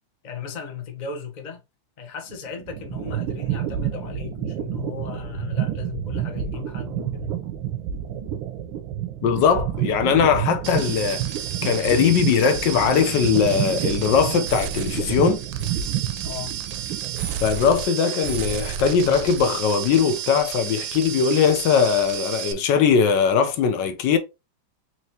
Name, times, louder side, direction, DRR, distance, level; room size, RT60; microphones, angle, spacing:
voice 1, 0.2-1.6 2.0-7.3 16.2-16.6, left 6 dB, 40° left, 0.6 m, -36 dB
sound 1, 2.3-17.8, right 11 dB, 90° right, 1.5 m, -29 dB
voice 2, 9.2-11.3 11.6-15.4 17.4-24.2, left 6 dB, 75° left, 1.2 m, -20 dB
sound 2, 10.6-22.5, right 9 dB, 70° right, 1.0 m, -32 dB
4.4 x 3.0 x 2.8 m
omnidirectional pair, 2.1 m